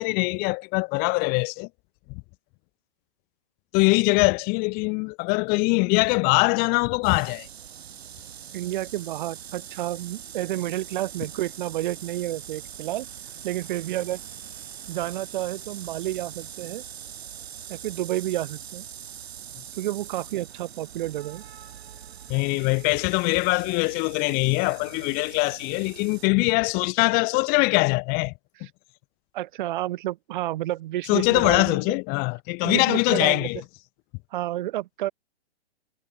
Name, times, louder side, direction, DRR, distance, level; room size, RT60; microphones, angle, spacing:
voice 1, 0.0-1.7 3.7-7.5 22.3-28.3 31.1-33.6, left 30 dB, 25° left, 2.9 m, -22 dB
sound 1, 7.0-26.3, right 9 dB, 65° right, 6.4 m, -42 dB
voice 2, 8.5-13.1 13.4-14.2 14.9-16.8 17.7-18.8 19.8-21.4 28.6-28.7 29.3-32.0 32.6-33.5 34.3-35.1, right 14 dB, 45° right, 7.8 m, -30 dB
hypercardioid pair, 155°, 33 cm